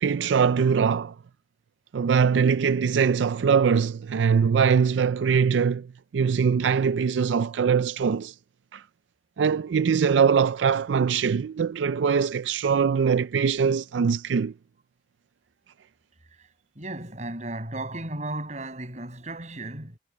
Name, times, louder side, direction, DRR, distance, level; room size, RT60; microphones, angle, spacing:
voice 1, 0.0-1.1 1.9-5.9 6.1-8.3 8.7-8.8 9.4-14.5, right 6 dB, 85° right, 0.4 m, -22 dB
voice 2, 16.8-20.0, right 2 dB, 40° right, 7.7 m, -35 dB
head